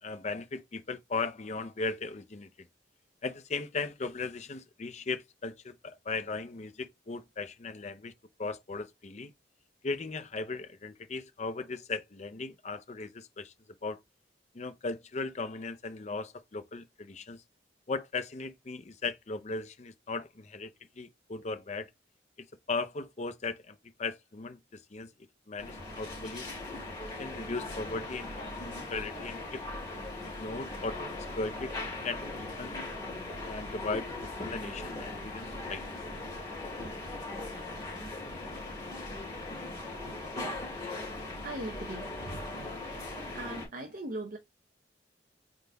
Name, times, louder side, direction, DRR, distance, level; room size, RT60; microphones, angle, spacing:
voice 1, 0.0-2.7 3.2-8.1 8.4-9.3 9.8-13.5 13.8-14.0 14.5-17.4 17.9-21.9 22.7-25.1 25.5-26.5 27.2-29.6 30.2-31.0 31.4-31.8 32.0-32.7 33.4-36.0, left 3 dB, 40° left, 0.6 m, -37 dB
sound 1, 25.6-43.7, left 2 dB, 20° left, 2.4 m, -39 dB
voice 2, 41.4-42.1 43.3-44.4, right 2 dB, 45° right, 0.7 m, -39 dB
3.9 x 3.8 x 3.3 m
head